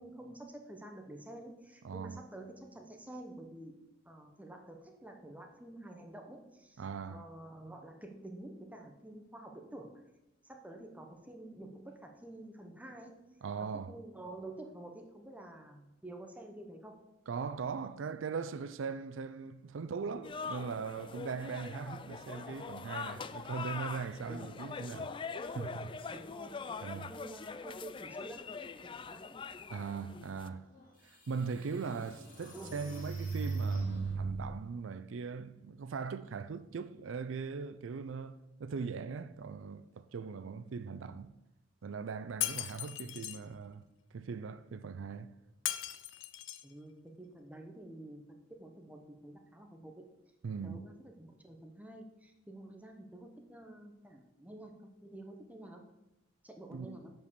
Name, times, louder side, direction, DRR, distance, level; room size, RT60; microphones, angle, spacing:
voice 1, 0.0-3.7 4.0-10.0 10.4-13.3 13.6-17.0 24.3-24.5 26.1-29.4 32.0-32.1 32.5-32.8 46.6-50.1 50.6-55.8 56.4-57.1, right 1 dB, 10° right, 1.0 m, -49 dB
voice 2, 1.8-2.2 6.8-7.3 13.4-14.0 17.3-25.2 25.5-25.9 26.8-27.1 29.7-30.7 31.0-41.4 41.8-43.9 44.1-45.3 50.4-50.9 56.7-57.0, right 5 dB, 90° right, 0.4 m, -40 dB
sound 1, 20.2-30.5, left 5 dB, 25° left, 0.3 m, -43 dB
sound 2, 30.7-30.8 31.4-34.5, right 4 dB, 45° left, 2.4 m, -37 dB
Shatter, 42.4-43.4 45.7-46.7, left 13 dB, 80° left, 0.5 m, -37 dB
7.8 x 5.4 x 6.7 m
head